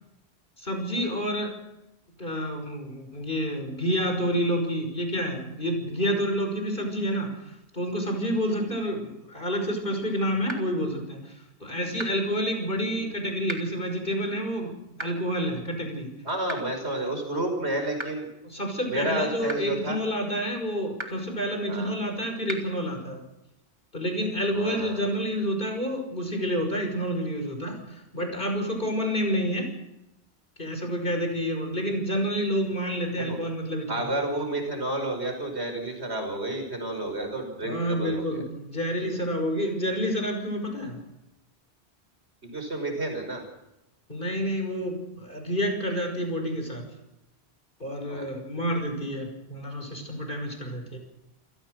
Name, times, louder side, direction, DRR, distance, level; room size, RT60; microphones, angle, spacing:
voice 1, 0.6-1.5 2.2-7.3 7.7-9.0 9.3-11.3 11.6-16.1 18.4-23.2 23.9-29.7 30.6-34.1 37.6-41.0 44.1-46.9 47.8-51.0, equal, 50° left, 4 dB, 5.9 m, -29 dB
sound 1, 10.5-10.6 12.0-12.1 13.5-13.6 15.0-15.1 16.5-16.6 18.0-18.1 19.5-19.6 21.0-21.1 22.5-22.6, right 1 dB, 25° right, 2.7 m, -33 dB
voice 2, 16.2-18.3 18.9-20.0 21.7-21.9 24.5-25.0 31.0-31.1 33.2-33.4 33.9-38.4 39.0-39.1 42.4-43.4 48.1-48.3, right 1 dB, 80° right, 4 dB, 5.9 m, -31 dB
28.5 x 17.5 x 6.6 m, 0.92 s
omnidirectional pair, 1.1 m